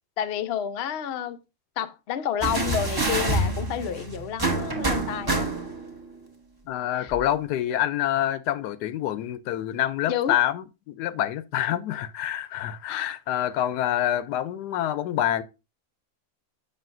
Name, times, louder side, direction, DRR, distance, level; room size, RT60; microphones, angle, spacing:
voice 1, 0.2-1.4 1.8-5.5 7.0-7.1 10.1-10.4 12.9-13.1, left 9 dB, 65° left, 0.6 m, -30 dB
sound 1, 2.4-5.9 7.1-7.2, right 2 dB, 20° right, 0.8 m, -27 dB
voice 2, 6.7-15.4, left 12 dB, 90° left, 1.2 m, -27 dB
6.7 x 6.6 x 2.5 m
omnidirectional pair, 1.7 m